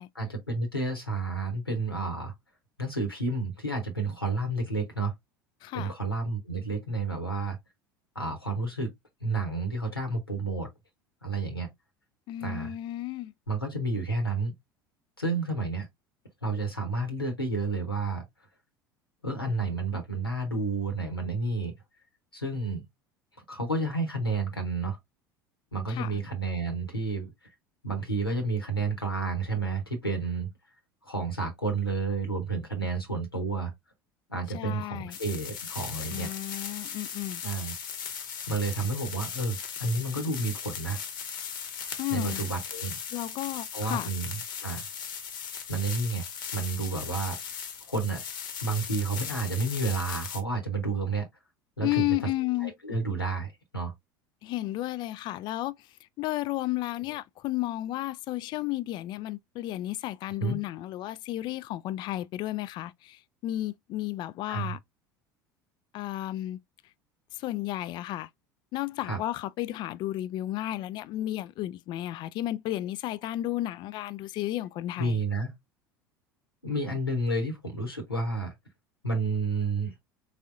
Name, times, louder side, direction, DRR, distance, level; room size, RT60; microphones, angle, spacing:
voice 1, 0.1-2.3 2.8-5.1 5.7-7.6 8.1-8.9 9.2-10.7 11.2-11.7 12.4-12.7 13.5-14.5 15.2-15.9 16.4-18.2 19.2-21.7 22.3-22.8 23.5-25.0 25.7-27.3 27.8-30.5 31.0-33.7 34.3-36.3 37.4-37.7 38.5-41.0 42.1-43.0 43.7-44.8 45.7-46.3 46.5-47.4 47.8-48.2 48.6-51.3 51.8-52.1 52.6-53.9 60.4-60.6 64.5-64.8 69.0-69.2 75.0-75.5 76.6-78.5 79.0-79.9, right 3 dB, 90° left, 1.0 m, -30 dB
voice 2, 5.6-5.9 12.3-13.3 25.9-26.2 34.5-35.2 36.1-37.4 42.0-42.4 43.1-44.1 51.8-52.7 54.4-55.7 56.2-64.8 65.9-66.6 67.3-68.3 68.7-75.2, left 15 dB, 40° left, 0.4 m, -33 dB
sound 1, 35.1-50.4, left 7 dB, 65° left, 1.0 m, -38 dB
4.1 x 3.6 x 2.4 m
figure-of-eight pair, 70°, 12 cm